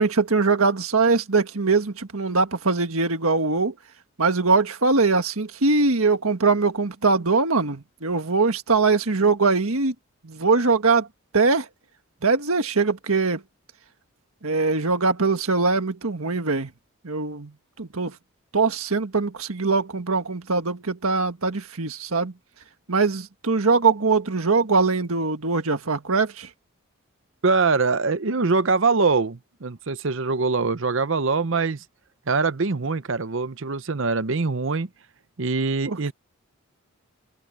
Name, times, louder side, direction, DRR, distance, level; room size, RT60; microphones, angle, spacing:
voice 1, 0.0-3.7 4.2-9.9 10.2-11.1 11.3-11.7 12.2-13.4 14.4-16.7 17.0-17.5 17.8-18.1 18.5-22.3 22.9-26.5 35.9-36.1, right 4 dB, 80° right, 1.6 m, -22 dB
voice 2, 27.4-31.8 32.3-34.9 35.4-36.1, right 4 dB, 60° right, 0.7 m, -23 dB
head